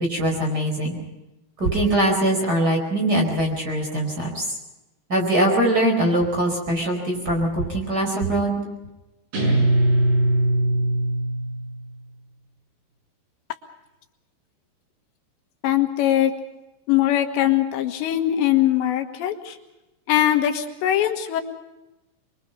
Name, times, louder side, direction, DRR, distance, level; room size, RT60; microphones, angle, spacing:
voice 1, 0.1-1.0 1.6-4.5 5.1-8.6, right 1 dB, 20° right, 2 dB, 4.7 m, -22 dB
Guitar, 9.3-11.9, right 1 dB, 70° right, 8.0 m, -21 dB
voice 2, 15.6-16.3 16.9-19.6 20.1-21.4, left 12 dB, 80° left, 6 dB, 3.6 m, -21 dB
25.5 x 23.0 x 5.5 m, 0.99 s
omnidirectional pair, 5.1 m